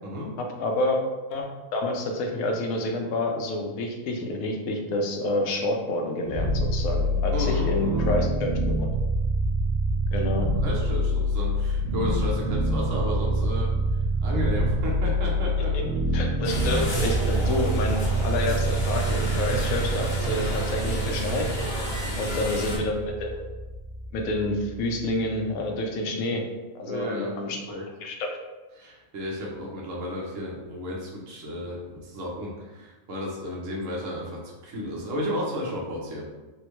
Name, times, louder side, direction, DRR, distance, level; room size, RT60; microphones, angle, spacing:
voice 1, 0.0-0.3 7.3-8.3 10.6-13.7 14.2-15.8 22.3-22.4 26.9-27.9 28.8-36.3, left 1 dB, 70° right, -3 dB, 1.1 m, -33 dB
voice 2, 0.6-1.0 1.3-1.5 1.7-8.5 8.8-8.9 10.1-10.5 16.1-21.7 22.2-23.5 24.1-26.4 26.7-28.3, left 1 dB, 85° left, 2 dB, 1.0 m, -28 dB
sound 1, 6.3-25.3, right 1 dB, 85° right, 1.2 m, -26 dB
sound 2, 16.4-22.8, equal, 50° left, 0.9 m, -31 dB
3.5 x 2.1 x 3.0 m, 1.1 s
omnidirectional pair, 1.4 m